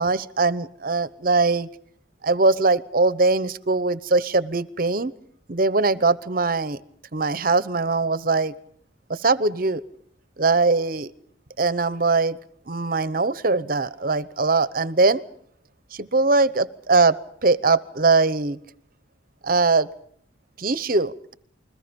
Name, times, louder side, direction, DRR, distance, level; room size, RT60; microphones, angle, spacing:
voice 1, 0.0-1.7 2.2-5.1 5.5-6.8 7.1-8.5 9.1-9.8 10.4-11.1 11.6-12.4 12.7-15.2 15.9-18.6 19.4-19.9 20.6-21.3, right 3 dB, 45° right, 16 dB, 0.8 m, -21 dB
29.0 x 21.5 x 5.3 m, 0.64 s
head